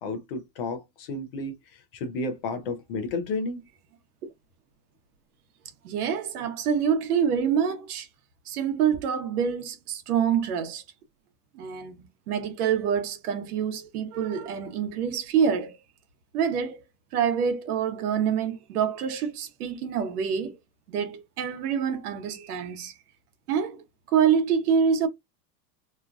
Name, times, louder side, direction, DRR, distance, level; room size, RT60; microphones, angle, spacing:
voice 1, 0.0-3.7, left 3 dB, 35° left, 0.5 m, -32 dB
voice 2, 5.8-8.1 8.5-10.8 11.5-15.8 16.3-16.8 17.1-20.6 20.9-22.9 23.5-23.8 24.1-25.1, right 7 dB, 65° right, 0.9 m, -26 dB
3.0 x 2.3 x 2.3 m
supercardioid pair, 160°, 49 cm